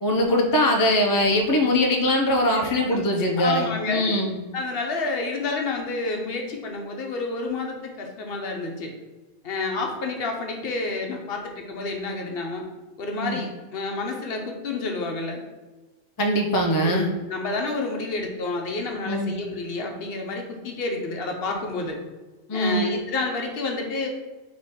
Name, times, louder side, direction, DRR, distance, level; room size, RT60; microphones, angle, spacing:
voice 1, 0.0-4.4 13.2-13.4 16.2-17.1 19.1-19.3 22.5-22.9, left 1 dB, 30° left, 1 dB, 0.4 m, -22 dB
voice 2, 2.5-3.0 3.3-4.3 4.5-8.9 9.4-12.6 13.0-15.4 16.8-22.0 22.5-24.1, left 3 dB, 65° left, 2 dB, 0.8 m, -29 dB
3.6 x 3.0 x 4.0 m, 1.2 s
omnidirectional pair, 1.1 m